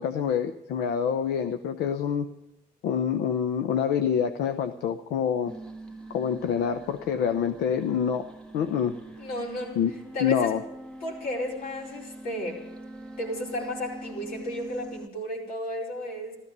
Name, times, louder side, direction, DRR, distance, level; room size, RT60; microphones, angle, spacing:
voice 1, 0.0-2.3 2.8-5.5 6.1-8.3 8.5-9.0 9.8-9.9 10.2-10.6, left 7 dB, 80° left, 10 dB, 0.8 m, -26 dB
sound 1, 5.5-15.1, right 1 dB, 5° left, 1.5 m, -43 dB
voice 2, 9.2-9.8 10.1-10.5 11.0-12.7 13.2-16.4, left 1 dB, 60° left, -1 dB, 4.7 m, -33 dB
14.0 x 13.5 x 6.7 m, 0.90 s
cardioid pair, 110°, 17 cm